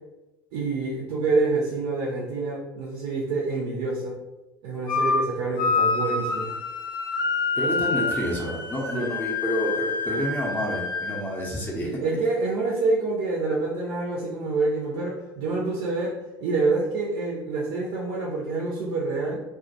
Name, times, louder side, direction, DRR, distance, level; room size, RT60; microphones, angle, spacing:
voice 1, 0.5-4.2 4.6-6.5 8.9-9.1 11.8-19.4, right 3 dB, 55° right, -3 dB, 0.5 m, -27 dB
sound 1, 4.9-5.2 5.6-11.6, left 3 dB, 70° left, 0.7 m, -27 dB
voice 2, 7.5-12.0, equal, 15° left, -3 dB, 0.6 m, -29 dB
2.2 x 2.1 x 2.7 m, 1.1 s
figure-of-eight pair, 65°, 12 cm